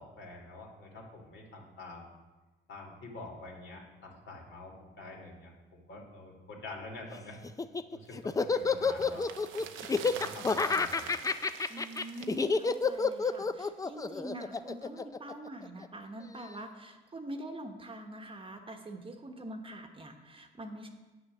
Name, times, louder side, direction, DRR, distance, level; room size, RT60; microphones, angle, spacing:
voice 1, 0.0-2.1 2.7-7.4 7.9-11.1, left 2 dB, 65° left, 0 dB, 2.6 m, -47 dB
Laughter, 7.4-15.9, left 4 dB, 15° left, 0.4 m, -29 dB
sound 1, 8.1-13.6 13.8-13.9, right 9 dB, 90° right, 0.7 m, -47 dB
voice 2, 11.7-20.9, right 1 dB, 25° right, 4 dB, 1.1 m, -44 dB
8.9 x 6.8 x 6.1 m, 1.2 s
cardioid pair, 90°, 20 cm